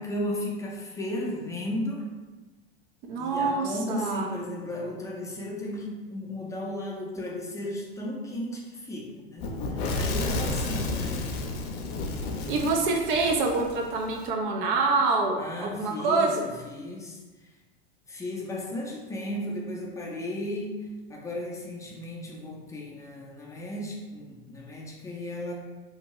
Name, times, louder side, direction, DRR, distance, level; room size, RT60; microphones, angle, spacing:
voice 1, 0.0-2.1 3.2-11.5 12.2-12.7 15.4-17.5 18.1-25.5, left 1 dB, 10° left, -2 dB, 0.5 m, -35 dB
voice 2, 3.1-4.3 12.5-16.3, right 3 dB, 60° right, 1 dB, 0.6 m, -26 dB
Fire / Explosion, 9.4-14.2, left 2 dB, 70° left, 0.5 m, -32 dB
2.7 x 2.2 x 2.9 m, 1.2 s
hypercardioid pair, 95°, 31 cm